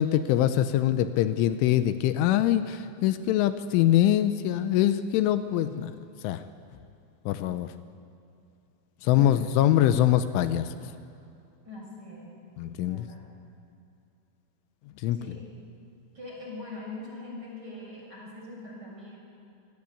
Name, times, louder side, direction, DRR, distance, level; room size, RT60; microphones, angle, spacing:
voice 1, 0.0-5.9 6.2-6.4 7.3-7.7 9.0-10.8 12.6-13.1 15.0-15.2, left 12 dB, 85° left, 11 dB, 3.2 m, -23 dB
voice 2, 9.1-9.6 11.7-12.4 12.8-13.3 15.1-15.5 16.1-19.2, left 2 dB, 20° right, -2 dB, 7.0 m, -42 dB
28.5 x 19.0 x 8.5 m, 2.5 s
omnidirectional pair, 5.6 m